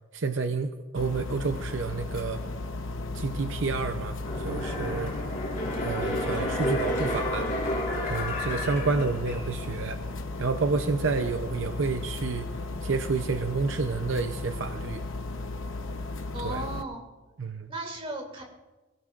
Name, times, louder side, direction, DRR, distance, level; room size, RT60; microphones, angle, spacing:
voice 1, 0.1-2.4 3.1-5.1 5.8-7.5 8.1-10.0 10.4-12.5 12.8-15.0 16.4-16.7 17.4-17.7, right 4 dB, 65° right, 7 dB, 0.6 m, -29 dB
sound 1, 1.0-16.8, left 2 dB, 70° left, 0.9 m, -35 dB
sound 2, 4.2-9.8 10.1-10.2, left 1 dB, 40° left, 4.6 m, -31 dB
voice 2, 16.3-17.0 17.7-18.4, right 2 dB, 25° right, 1 dB, 2.7 m, -36 dB
20.5 x 16.5 x 2.5 m, 1.2 s
head